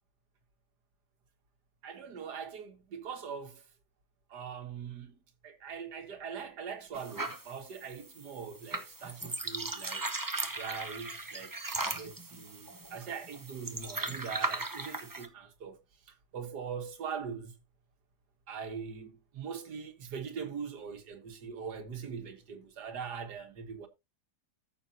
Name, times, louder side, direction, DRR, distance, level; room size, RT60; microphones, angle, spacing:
voice 1, 1.8-3.6 4.3-10.0 10.6-15.8 16.1-17.5 18.5-23.9, right 6 dB, 90° right, 2.0 m, -42 dB
sound 1, 6.9-15.3, right 2 dB, 20° right, 0.7 m, -38 dB
14.0 x 6.7 x 2.7 m
omnidirectional pair, 1.7 m